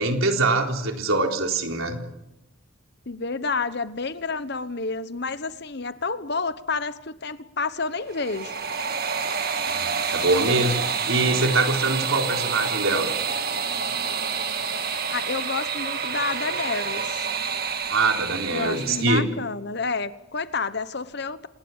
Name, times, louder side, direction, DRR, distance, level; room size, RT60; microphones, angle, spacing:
voice 1, 0.0-2.0 9.7-13.1 17.9-19.3, right 2 dB, 75° right, 3 dB, 4.0 m, -23 dB
voice 2, 3.1-8.5 15.1-17.3 18.5-21.5, left 4 dB, 55° left, 13 dB, 1.1 m, -29 dB
sound 1, 8.0-19.2, right 6 dB, 45° right, 1.9 m, -28 dB
27.0 x 20.0 x 7.3 m, 0.87 s
head